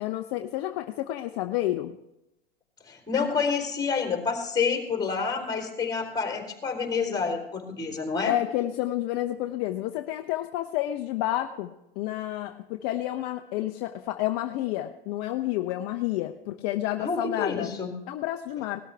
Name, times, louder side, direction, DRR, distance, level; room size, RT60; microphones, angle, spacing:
voice 1, 0.0-2.0 8.3-17.7 18.1-18.8, left 14 dB, 45° left, 6 dB, 0.8 m, -30 dB
voice 2, 2.8-8.3 17.0-17.9, left 5 dB, 15° left, 2 dB, 3.7 m, -28 dB
19.0 x 13.0 x 3.4 m, 0.90 s
hypercardioid pair, 100°, 29 cm